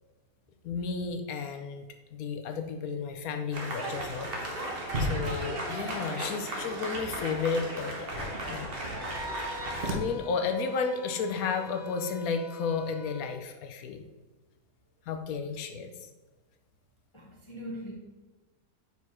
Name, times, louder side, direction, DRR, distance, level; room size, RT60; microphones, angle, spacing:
voice 1, 0.6-1.8 2.1-8.7 9.0-9.1 9.8-14.1 15.1-16.1, left 5 dB, 65° left, 6 dB, 1.0 m, -33 dB
sound 1, 3.5-9.9, right 1 dB, 40° right, 1.0 m, -34 dB
sound 2, 8.8-13.4, left 4 dB, 85° left, 1.4 m, -46 dB
voice 2, 17.1-17.9, equal, 30° left, -2 dB, 0.5 m, -40 dB
5.5 x 4.6 x 4.7 m, 1.2 s
omnidirectional pair, 1.8 m